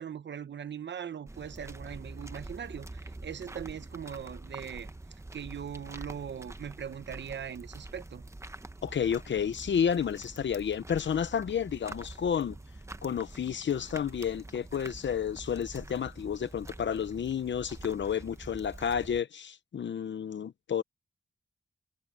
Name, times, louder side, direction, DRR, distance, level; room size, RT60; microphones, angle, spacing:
voice 1, 0.0-4.9 5.3-8.2, right 8 dB, 65° right, 0.9 m, -40 dB
sound 1, 1.3-19.2, right 2 dB, 15° right, 0.9 m, -46 dB
voice 2, 8.8-12.6 13.0-20.8, left 8 dB, 70° left, 0.8 m, -31 dB
wide cardioid pair, 115°, 20 cm